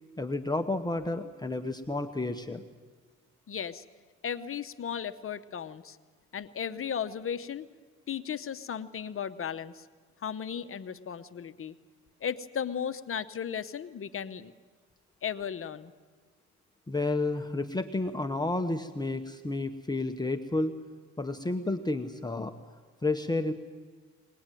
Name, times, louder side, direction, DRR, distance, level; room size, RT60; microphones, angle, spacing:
voice 1, 0.2-2.6 16.9-20.8 21.2-22.5 23.0-23.5, left 2 dB, 15° left, 6 dB, 1.1 m, -31 dB
voice 2, 3.5-3.8 4.2-6.0 6.3-7.7 8.1-9.8 10.2-11.8 12.2-14.5 15.2-15.9, left 8 dB, 45° left, 12 dB, 1.0 m, -35 dB
22.0 x 20.0 x 9.1 m, 1.4 s
cardioid pair, 90°, 30 cm